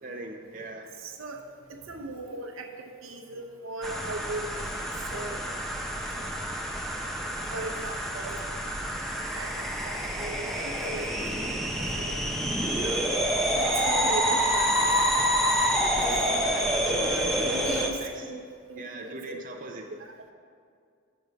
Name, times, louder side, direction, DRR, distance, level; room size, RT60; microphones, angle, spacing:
voice 1, 0.0-0.9 15.8-18.2 18.8-19.9, right 2 dB, 40° right, 2 dB, 0.5 m, -39 dB
voice 2, 1.0-1.4 1.7-4.8 5.1-5.4 6.2-6.5 7.5-8.4 9.3-11.4 11.8-12.2 12.8-13.1 13.6-15.1 16.9-19.2 19.9-20.3, right 2 dB, 80° right, 4 dB, 0.7 m, -39 dB
sound 1, 3.8-17.9, equal, ahead, 0.6 m, -28 dB
6.8 x 5.3 x 6.0 m, 2.2 s
head